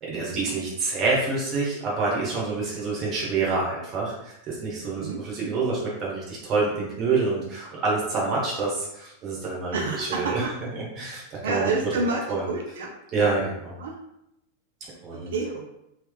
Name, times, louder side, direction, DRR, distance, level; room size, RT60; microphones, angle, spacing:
voice 1, 0.0-10.4 10.7-12.0 12.3-12.4 13.1-13.8 15.0-15.3, right 3 dB, 35° right, -5 dB, 1.0 m, -27 dB
voice 2, 5.0-5.5 9.7-10.5 11.4-12.9 13.8-14.0 15.1-15.6, right 3 dB, 60° right, 0 dB, 0.5 m, -29 dB
3.5 x 3.0 x 2.2 m, 0.81 s
figure-of-eight pair, 90°, 0 cm